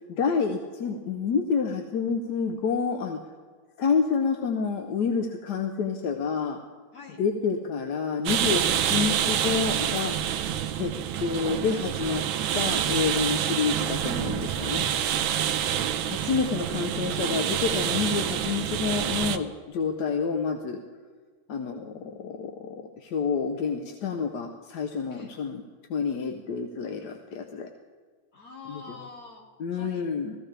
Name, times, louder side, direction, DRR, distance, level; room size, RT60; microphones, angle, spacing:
voice 1, 0.1-3.2 3.8-6.6 7.2-10.1 10.8-10.9 11.2-12.2 12.5-14.9 16.2-20.8 21.5-25.6 25.9-27.7 28.7-29.0 29.6-30.4, left 5 dB, 65° left, 4 dB, 1.2 m, -28 dB
sound 1, 8.3-19.4, right 10 dB, 80° right, 1.4 m, -27 dB
voice 2, 15.3-16.1 25.1-25.3 28.3-29.4 29.7-30.1, left 4 dB, 45° left, -2 dB, 2.7 m, -45 dB
16.5 x 15.0 x 3.3 m, 1.5 s
omnidirectional pair, 2.2 m